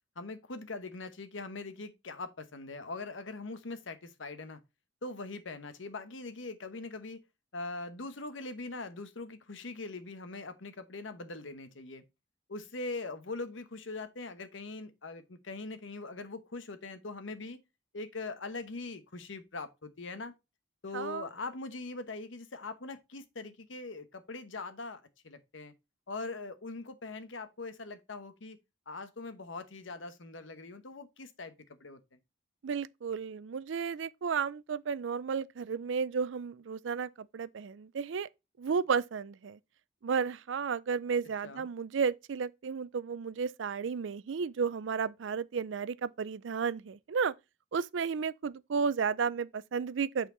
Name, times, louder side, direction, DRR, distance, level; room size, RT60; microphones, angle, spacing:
voice 1, 0.2-4.6 5.0-7.2 7.5-12.0 12.5-17.6 17.9-20.3 20.8-25.7 26.1-28.6 28.9-32.0 41.4-41.7, left 3 dB, 85° left, 1.0 m, -42 dB
voice 2, 20.9-21.3 32.6-38.3 38.6-39.6 40.0-47.3 47.7-50.3, right 6 dB, 80° right, 0.4 m, -33 dB
8.4 x 4.3 x 3.8 m
head